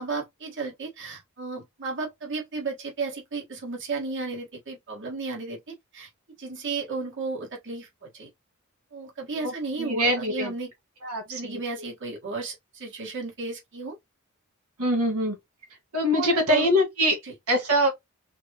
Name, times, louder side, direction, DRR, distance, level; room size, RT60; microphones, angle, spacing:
voice 1, 0.0-6.1 6.4-8.3 8.9-10.7 11.3-14.0 16.1-16.7 17.2-17.3, right 4 dB, 60° right, 1.8 m, -33 dB
voice 2, 9.3-10.5 11.0-11.6 14.8-15.4 15.9-17.2 17.5-17.9, equal, 90° right, 1.9 m, -24 dB
5.7 x 2.3 x 3.0 m
head